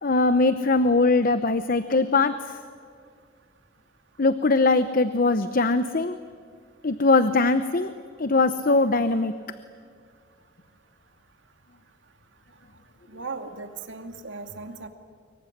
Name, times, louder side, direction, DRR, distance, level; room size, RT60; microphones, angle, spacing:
voice 1, 0.0-2.3 4.2-6.2 6.8-7.9 8.2-9.3, left 3 dB, 50° left, 11 dB, 0.9 m, -21 dB
voice 2, 13.1-14.9, right 4 dB, 80° right, 6 dB, 2.4 m, -37 dB
25.0 x 23.0 x 9.9 m, 2.1 s
head